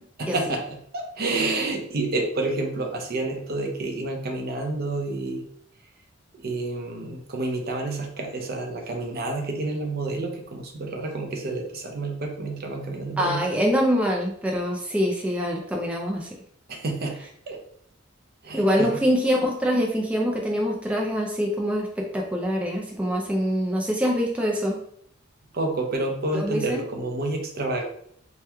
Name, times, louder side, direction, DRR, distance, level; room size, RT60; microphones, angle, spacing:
voice 1, 0.2-5.4 6.3-13.4 16.7-17.6 18.4-18.9 22.8-22.9 25.5-27.8, right 2 dB, 50° right, 2 dB, 0.6 m, -29 dB
voice 2, 13.2-16.3 18.5-24.8 26.3-26.8, equal, 5° right, -1 dB, 0.4 m, -24 dB
3.0 x 2.2 x 3.4 m, 0.67 s
head